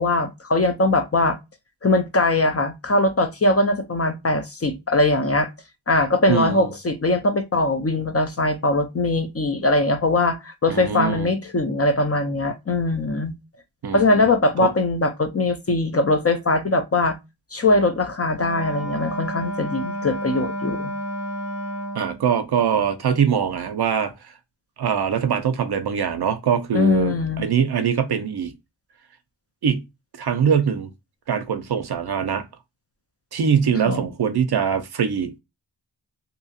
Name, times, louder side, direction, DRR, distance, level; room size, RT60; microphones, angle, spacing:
voice 1, 0.0-1.4 1.8-5.5 5.9-13.3 13.9-17.2 17.5-20.9 26.7-27.5 33.9-34.0, left 2 dB, 30° left, 0.5 m, -21 dB
voice 2, 6.3-6.7 10.7-11.3 13.8-14.3 14.6-14.7 21.9-24.3 24.8-28.5 29.6-29.8 30.2-30.9 31.3-32.5 33.3-35.3, right 7 dB, 55° right, 0.6 m, -22 dB
Wind instrument woodwind instrument, 18.3-22.2, right 1 dB, 60° left, 1.4 m, -30 dB
2.7 x 2.4 x 2.7 m
cardioid pair, 65°, 47 cm